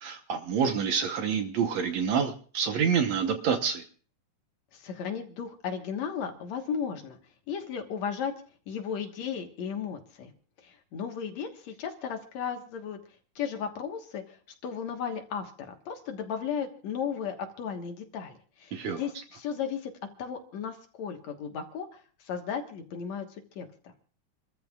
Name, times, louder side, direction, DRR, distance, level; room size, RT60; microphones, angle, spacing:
voice 1, 0.0-3.8 18.7-19.0, right 6 dB, 65° right, 6 dB, 2.1 m, -27 dB
voice 2, 4.7-7.2 7.5-8.3 8.7-10.3 10.6-13.0 13.4-19.9 20.2-23.3 23.6-23.9, left 7 dB, 65° left, 4 dB, 2.5 m, -35 dB
28.5 x 13.5 x 2.4 m, 0.41 s
omnidirectional pair, 3.6 m